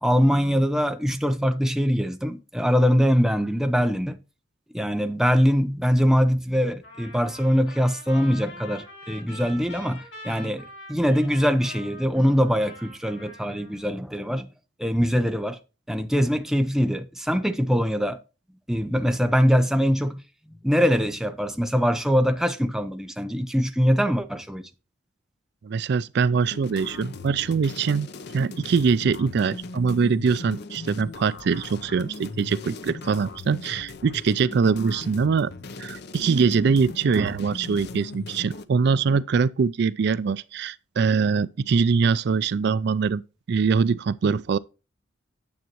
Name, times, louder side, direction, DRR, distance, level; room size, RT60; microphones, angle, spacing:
voice 1, 0.0-4.2 4.7-14.5 14.8-15.6 15.9-18.2 18.7-20.2 20.6-24.6, equal, ahead, 0.8 m, -22 dB
Trumpet, 6.8-13.9, left 1 dB, 75° left, 4.4 m, -44 dB
voice 2, 25.6-28.1 28.3-35.5 35.8-43.2 43.5-44.6, right 5 dB, 60° right, 0.4 m, -23 dB
sound 1, 26.4-38.7, left 3 dB, 60° left, 0.7 m, -39 dB
9.4 x 7.4 x 3.0 m
head